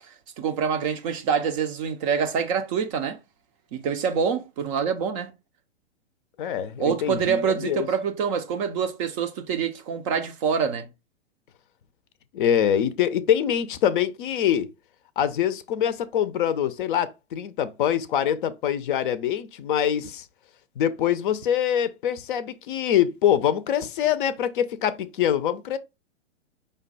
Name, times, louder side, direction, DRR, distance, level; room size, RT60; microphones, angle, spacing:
voice 1, 0.4-3.2 3.7-5.3 6.8-10.9, right 6 dB, 30° right, 0.4 m, -26 dB
voice 2, 6.4-7.9 12.3-14.7 15.2-20.2 20.8-25.8, left 10 dB, 45° left, 0.5 m, -24 dB
5.1 x 2.2 x 3.9 m
figure-of-eight pair, 110°, 36 cm